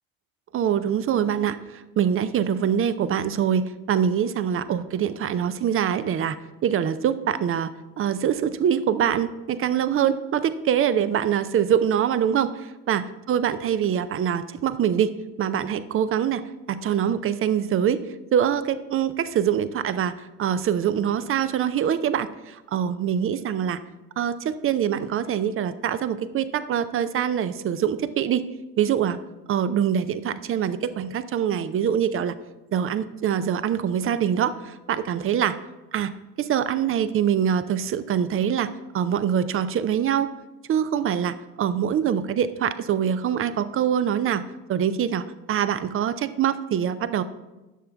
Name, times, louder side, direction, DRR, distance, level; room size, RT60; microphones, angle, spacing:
voice 1, 0.5-7.7 8.0-15.1 15.4-16.4 16.7-18.0 18.3-23.8 24.2-28.4 28.8-29.2 29.5-32.3 32.7-35.6 35.9-36.1 36.4-38.7 38.9-40.3 40.7-47.2, right 9 dB, 30° right, 14 dB, 0.5 m, -24 dB
11.0 x 6.7 x 3.4 m, 1.1 s
hypercardioid pair, 70°, 46 cm